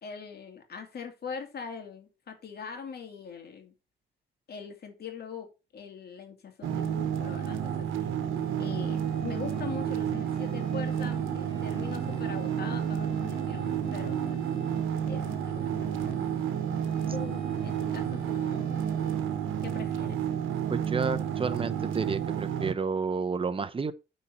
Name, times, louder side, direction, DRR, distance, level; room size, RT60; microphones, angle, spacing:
voice 1, 0.0-3.7 4.5-8.1 8.6-14.4 14.6-14.8 15.1-16.2 17.1-18.7 19.6-20.2, left 6 dB, 55° left, 2.5 m, -42 dB
sound 1, 6.6-22.7, right 9 dB, 85° right, 1.1 m, -31 dB
sound 2, 8.3-19.2, left 3 dB, 30° left, 1.9 m, -46 dB
voice 2, 20.7-23.9, right 5 dB, 25° right, 0.9 m, -30 dB
8.2 x 4.5 x 5.4 m
cardioid pair, 90°, 20 cm